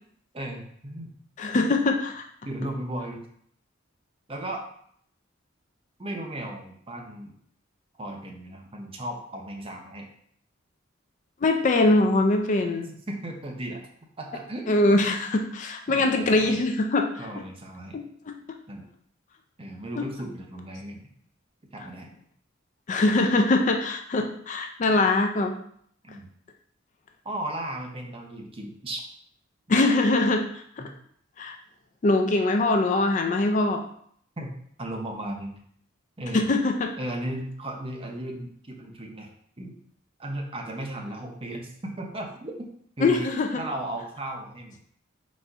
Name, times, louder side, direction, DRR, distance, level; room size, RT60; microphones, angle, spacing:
voice 1, 0.3-1.1 2.4-3.2 4.3-4.7 6.0-7.3 8.0-10.1 13.1-13.8 14.2-15.0 15.9-16.6 17.2-18.0 18.7-18.8 19.6-21.1 21.7-22.1 23.0-23.1 26.0-26.3 27.2-29.0 29.7-29.8 30.8-30.9 34.4-34.5 34.8-35.5 36.2-36.5 37.0-39.3 39.6-39.8 40.2-42.7 43.0-43.3 43.6-44.8, right 1 dB, 30° right, 1 dB, 0.7 m, -35 dB
voice 2, 1.4-2.2 11.4-12.9 14.7-17.1 17.9-18.4 22.9-25.5 29.7-30.5 30.8-30.9 31.4-31.5 32.0-33.8 36.3-36.9 43.0-43.5, left 2 dB, 40° left, 4 dB, 0.4 m, -22 dB
4.0 x 2.6 x 4.5 m, 0.64 s
head